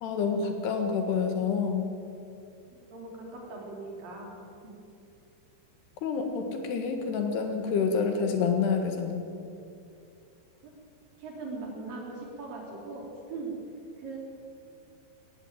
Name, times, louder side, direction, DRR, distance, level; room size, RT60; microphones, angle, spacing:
voice 1, 0.0-1.9 6.0-9.3, left 5 dB, 70° left, 5 dB, 3.5 m, -28 dB
voice 2, 2.9-4.8 10.6-10.7 11.2-13.5 14.0-14.2, right 3 dB, 55° right, -1 dB, 5.1 m, -40 dB
18.5 x 15.5 x 9.1 m, 2.6 s
omnidirectional pair, 5.1 m